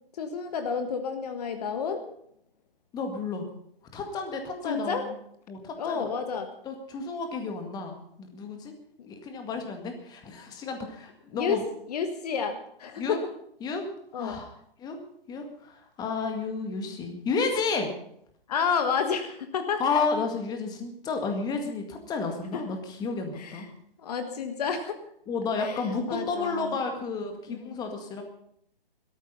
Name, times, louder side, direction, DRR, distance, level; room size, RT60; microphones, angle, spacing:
voice 1, 0.2-2.0 4.6-5.1 5.8-6.5 11.4-11.6 11.9-13.2 14.1-14.4 18.5-19.8 22.5-22.6 23.4-23.6 24.0-25.0 25.6-26.8 27.5-27.8, left 6 dB, 40° left, 7 dB, 1.5 m, -30 dB
voice 2, 2.9-3.5 3.9-5.1 5.5-6.1 6.6-8.7 9.1-11.6 13.0-13.2 13.6-13.8 14.2-14.5 14.8-15.0 15.3-17.9 19.8-23.7 25.3-28.2, left 4 dB, 15° left, 4 dB, 2.0 m, -31 dB
16.5 x 13.5 x 5.6 m, 0.70 s
figure-of-eight pair, 135°, 29 cm